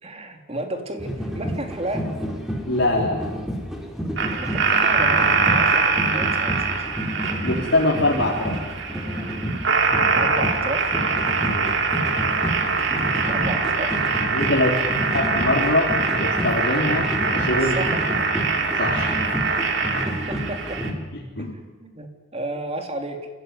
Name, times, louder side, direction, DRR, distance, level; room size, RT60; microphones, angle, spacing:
voice 1, 0.0-2.1 4.3-6.6 10.1-11.0 13.0-14.1 15.0-15.2 17.6-18.0 19.9-20.8 21.4-21.5 21.8-23.2, right 1 dB, 30° right, 4 dB, 3.3 m, -33 dB
sound 1, 1.0-20.9, equal, ahead, 3.7 m, -30 dB
voice 2, 2.7-3.2 7.4-8.6 11.4-11.7 14.3-14.8 15.1-15.9 16.2-17.1 17.3-17.8 18.8-19.1 19.9-20.0 21.1-21.5, left 2 dB, 65° left, -4 dB, 3.6 m, -23 dB
sound 2, 4.2-20.9, right 4 dB, 65° right, 2.8 m, -23 dB
28.0 x 15.5 x 9.6 m, 1.4 s
head